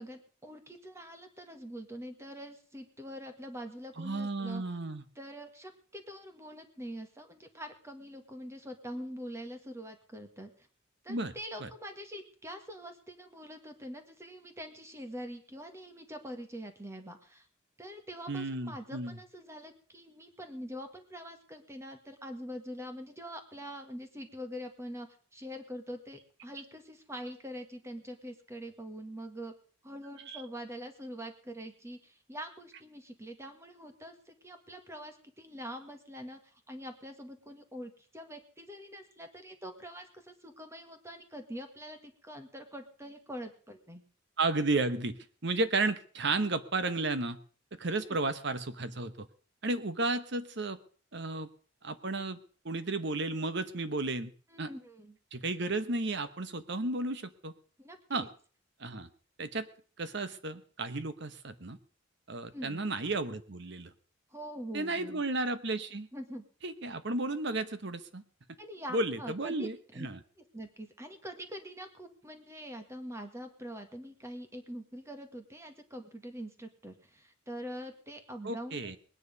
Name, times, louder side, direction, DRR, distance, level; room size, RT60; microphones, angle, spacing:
voice 1, 0.0-4.6 5.2-10.7 11.0-17.5 17.8-29.5 29.8-44.0 47.9-48.2 54.5-55.2 57.8-58.3 62.5-62.9 64.3-65.2 66.1-66.4 68.6-70.1 70.5-78.9, equal, 15° right, 6 dB, 1.7 m, -44 dB
voice 2, 4.0-5.0 11.1-11.3 11.6-11.7 18.3-19.2 30.3-30.4 44.4-45.2 45.4-47.4 47.7-49.3 49.6-50.8 51.1-51.5 51.8-52.4 52.6-54.3 54.6-54.7 55.3-57.5 58.1-58.3 58.8-59.1 59.4-59.7 60.0-61.8 62.3-63.9 64.7-66.1 66.6-68.2 68.9-70.2 78.4-79.0, right 2 dB, 60° right, 12 dB, 1.1 m, -33 dB
20.5 x 9.8 x 5.4 m, 0.43 s
head